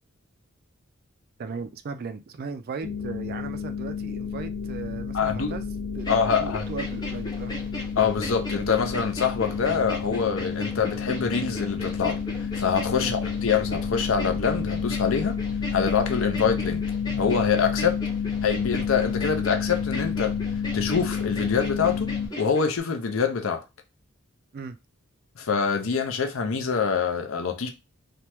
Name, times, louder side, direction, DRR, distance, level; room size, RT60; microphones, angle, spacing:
voice 1, 1.4-5.7 6.0-6.1 6.4-7.6 13.0-13.5 24.5-24.8, right 4 dB, 45° right, 0.4 m, -37 dB
sound 1, 2.8-22.3, left 6 dB, 50° left, 0.9 m, -30 dB
voice 2, 5.1-5.5 6.1-6.6 8.0-12.2 12.6-15.4 15.7-16.8 17.2-18.0 18.4-20.3 20.7-22.1 22.4-23.6 25.4-27.7, left 6 dB, 75° left, 0.6 m, -25 dB
sound 2, 6.0-22.8, equal, 20° left, 0.6 m, -38 dB
3.4 x 2.1 x 2.9 m
head